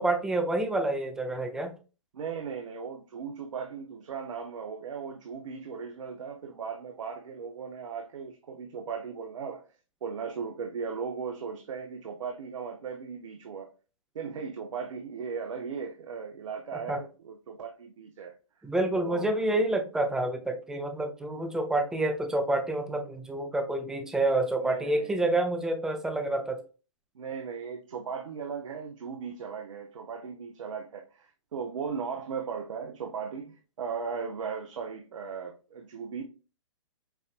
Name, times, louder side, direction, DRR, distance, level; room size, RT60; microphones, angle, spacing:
voice 1, 0.0-1.7 16.9-17.0 18.6-26.6, right 2 dB, 5° right, 0.6 m, -28 dB
voice 2, 2.1-9.6 10.0-13.7 14.1-18.3 18.9-19.4 24.6-25.2 27.1-36.2, right 6 dB, 70° right, 0.8 m, -37 dB
5.8 x 2.6 x 2.4 m
hypercardioid pair, 135°, 17 cm